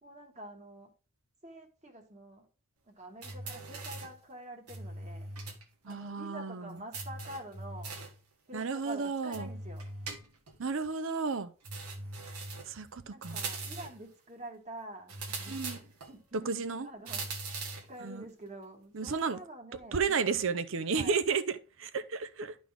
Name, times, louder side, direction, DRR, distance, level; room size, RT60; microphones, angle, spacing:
voice 1, 0.0-0.9 1.4-2.5 2.9-5.3 5.9-7.9 8.5-9.8 13.1-15.5 16.1-16.5 16.8-17.2 17.9-20.3 20.9-21.2, right 1 dB, 30° right, 1.7 m, -47 dB
sound 1, 3.2-4.2 4.7-5.6 5.9-6.0 6.9-8.2 9.3-10.6 11.6-12.8 13.2-14.0 15.1-16.1 17.1-17.9, right 3 dB, 90° right, 1.6 m, -41 dB
voice 2, 5.8-6.8 8.5-9.5 10.6-11.5 12.7-13.4 15.5-15.8 16.3-16.9 18.0-18.2 18.9-19.4 19.9-22.6, right 5 dB, 60° right, 0.6 m, -32 dB
11.5 x 4.1 x 3.5 m
head